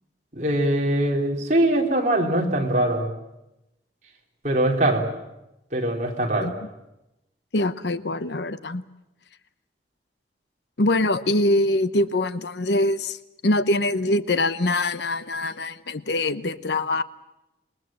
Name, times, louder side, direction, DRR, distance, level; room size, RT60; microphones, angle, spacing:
voice 1, 0.3-3.1 4.4-5.0 5.7-6.5, right 1 dB, 40° right, 0 dB, 3.9 m, -22 dB
voice 2, 7.5-8.8 10.8-13.2 13.4-17.0, left 2 dB, 70° left, 13 dB, 0.9 m, -23 dB
28.0 x 21.0 x 7.7 m, 0.92 s
head